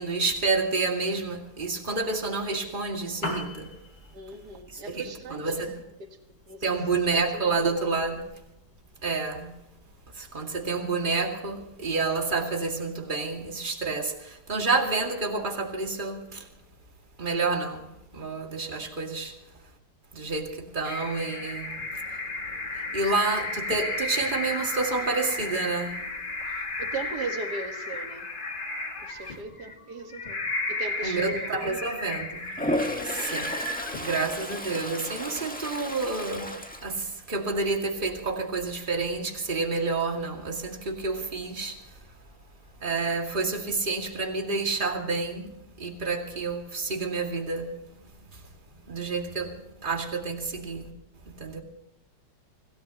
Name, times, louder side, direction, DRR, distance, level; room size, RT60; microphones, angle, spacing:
voice 1, 0.0-3.7 4.7-5.0 5.3-5.7 6.6-8.3 9.0-9.5 10.1-16.5 17.2-19.3 20.1-21.8 22.7-26.0 31.0-32.6 33.0-33.6 34.0-36.5 36.8-41.8 42.8-47.7 48.3-48.4 48.9-50.9 51.3-51.6, right 3 dB, 30° right, 2.4 m, -29 dB
Piano, 3.0-12.0, left 1 dB, 90° left, 4.4 m, -44 dB
voice 2, 4.1-5.7 6.0-6.7 7.1-8.1 26.5-28.3 29.0-31.9, right 3 dB, 75° right, 2.2 m, -39 dB
sound 1, 20.8-34.4, left 2 dB, 30° left, 1.8 m, -34 dB
Toilet flush, 32.5-37.7 38.1-38.5 42.9-43.0 43.3-44.0, left 1 dB, 5° left, 1.4 m, -33 dB
26.0 x 17.5 x 3.0 m
omnidirectional pair, 1.8 m